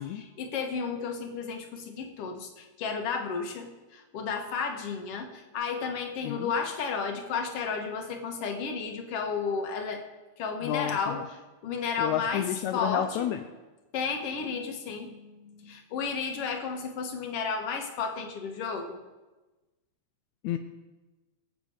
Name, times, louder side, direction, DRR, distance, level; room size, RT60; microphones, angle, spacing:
voice 1, 0.0-10.0 10.4-11.2 11.6-12.5 12.7-13.3 13.9-19.0, left 5 dB, 55° left, 3 dB, 2.3 m, -33 dB
voice 2, 10.6-11.2 12.0-13.4 20.4-20.6, left 10 dB, 80° left, 7 dB, 2.0 m, -30 dB
24.0 x 8.3 x 4.9 m, 1.2 s
omnidirectional pair, 3.4 m